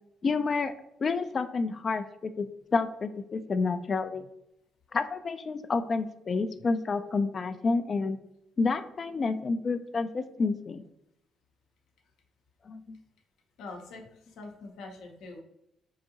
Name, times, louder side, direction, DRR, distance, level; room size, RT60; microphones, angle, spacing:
voice 1, 0.2-0.7 1.0-4.2 4.9-8.2 8.6-10.8 12.7-13.0, left 4 dB, 45° left, 10 dB, 0.3 m, -29 dB
voice 2, 13.6-15.4, left 3 dB, 80° left, 2 dB, 0.7 m, -44 dB
4.7 x 2.6 x 2.8 m, 0.82 s
supercardioid pair, 65°, 0 cm